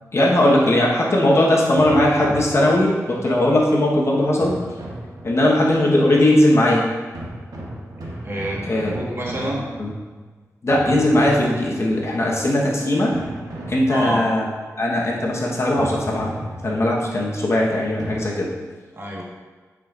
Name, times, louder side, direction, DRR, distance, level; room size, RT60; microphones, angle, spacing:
voice 1, 0.1-4.6 5.2-6.9 8.7-8.9 9.3-9.5 9.8-9.9 10.6-13.2 13.7-14.4 14.8-16.3 16.6-18.5, left 1 dB, 50° left, -3 dB, 1.3 m, -18 dB
sound 1, 1.8-3.2 4.4-5.7 7.1-10.2 10.7-12.2 13.1-14.5 15.8-17.2 18.0-18.2, right 1 dB, 85° right, 1.2 m, -35 dB
voice 2, 8.2-9.6 13.9-14.2 18.9-19.2, right 1 dB, 45° right, -4 dB, 1.6 m, -28 dB
8.9 x 5.1 x 2.6 m, 1.4 s
cardioid pair, 65°, 6 cm